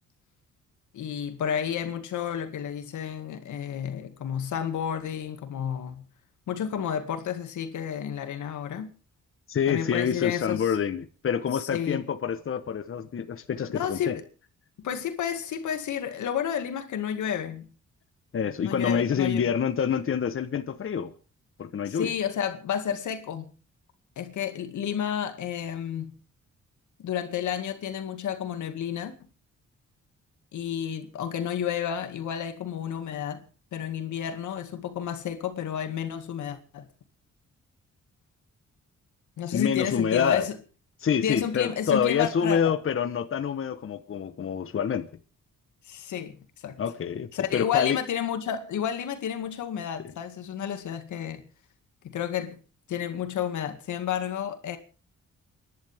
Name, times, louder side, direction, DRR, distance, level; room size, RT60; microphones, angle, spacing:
voice 1, 0.9-6.0 6.5-8.9 9.7-10.8 11.6-12.0 13.7-14.2 14.8-17.7 18.6-19.5 21.9-23.6 24.2-26.2 27.0-29.1 30.5-33.4 33.7-36.8 39.4-40.6 41.2-42.7 45.9-46.8 47.3-51.5 52.0-52.6 52.9-54.8, left 9 dB, 85° left, 2.2 m, -31 dB
voice 2, 9.5-14.2 18.3-21.1 21.6-22.1 39.5-40.5 41.0-45.1 46.8-48.0, left 7 dB, 45° left, 1.1 m, -27 dB
29.5 x 11.5 x 3.6 m
cardioid pair, 105°, 29 cm